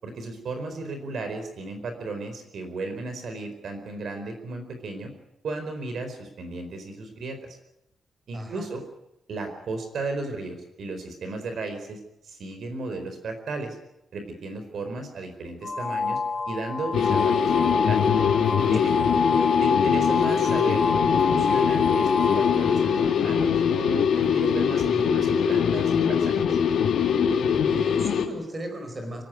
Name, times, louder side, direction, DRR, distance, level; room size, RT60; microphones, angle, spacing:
voice 1, 0.0-5.1 5.4-7.4 8.3-8.8 9.3-12.0 12.3-13.8 14.1-16.2 16.5-18.0 18.7-18.9 19.6-26.4, right 3 dB, 55° right, 7 dB, 4.5 m, -34 dB
voice 2, 8.3-8.7 18.9-19.5 27.6-29.2, equal, 20° right, 5 dB, 4.6 m, -37 dB
sound 1, 15.6-23.2, left 4 dB, 25° left, 1.9 m, -27 dB
sound 2, 16.9-28.3, left 7 dB, 75° left, 2.7 m, -22 dB
25.5 x 17.5 x 9.3 m, 0.85 s
wide cardioid pair, 180°, 0 cm